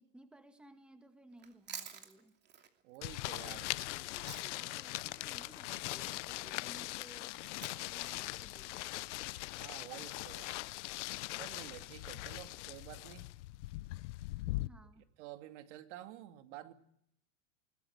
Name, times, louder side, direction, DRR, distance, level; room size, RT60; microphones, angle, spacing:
voice 1, 0.0-2.4 3.5-7.4 7.7-8.9 14.5-15.1, right 1 dB, 5° right, 7 dB, 2.0 m, -59 dB
Chewing mastication, 1.3-4.8 5.1-9.4, right 8 dB, 25° right, 2.8 m, -52 dB
voice 2, 2.8-3.7 9.6-10.5 11.4-13.3 15.0-16.7, right 14 dB, 60° right, 8 dB, 2.5 m, -50 dB
sound 1, 3.0-14.7, left 19 dB, 65° left, 0.9 m, -41 dB
21.5 x 20.5 x 8.1 m, 0.70 s
supercardioid pair, 130°, 39 cm